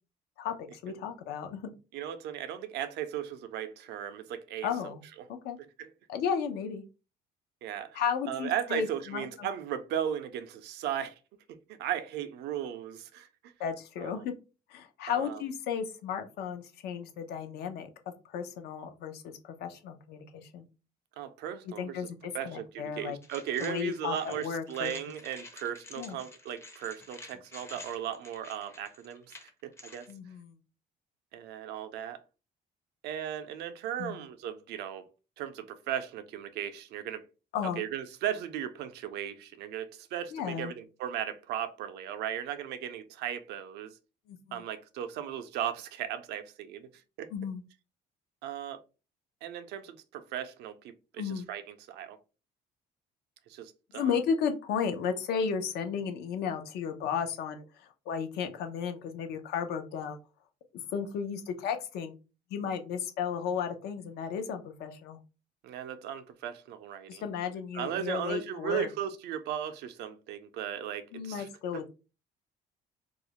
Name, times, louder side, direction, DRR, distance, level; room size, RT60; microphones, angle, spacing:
voice 1, 0.4-1.7 4.6-5.0 5.3-5.6 6.1-6.8 7.9-9.5 13.6-14.3 14.7-17.9 18.3-20.7 21.7-23.2 23.6-24.9 26.0-26.2 30.1-30.6 34.0-34.2 37.5-37.8 40.3-40.7 44.3-44.6 47.3-47.6 51.2-51.5 53.9-60.2 60.9-62.1 62.5-65.2 67.1-68.9 71.1-71.9, left 7 dB, 75° left, 0.5 m, -34 dB
voice 2, 1.9-5.3 5.8-5.9 7.6-8.0 8.3-11.2 11.5-13.5 14.0-14.2 15.1-15.4 21.2-22.1 22.3-30.1 31.3-32.2 33.0-35.0 35.4-37.3 37.6-44.0 44.5-47.3 48.4-48.8 49.4-50.8 51.1-52.2 53.5-54.2 65.6-67.2 67.7-71.5, right 10 dB, 80° right, 0.4 m, -37 dB
sound 1, 23.2-30.1, left 2 dB, 15° left, 0.5 m, -50 dB
2.4 x 2.0 x 2.8 m
cardioid pair, 110°, 17 cm